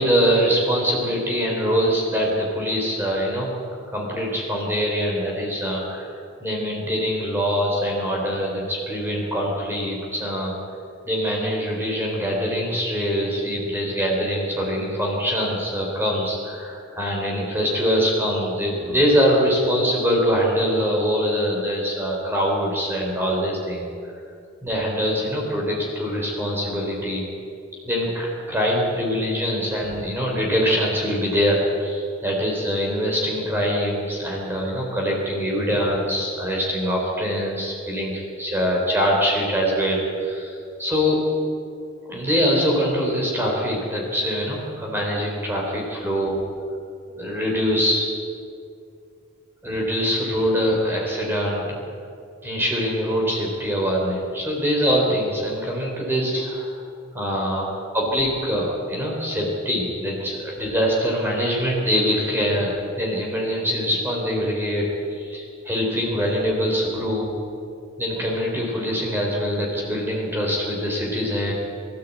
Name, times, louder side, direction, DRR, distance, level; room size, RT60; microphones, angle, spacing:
voice 1, 0.0-3.5 3.9-6.1 6.4-10.6 11.1-23.8 24.6-27.3 27.8-41.2 42.1-46.4 47.1-48.1 49.6-51.8 52.4-56.7 57.1-67.3 68.0-71.5, equal, 10° right, -2 dB, 4.0 m, -23 dB
22.5 x 13.5 x 8.6 m, 2.4 s
head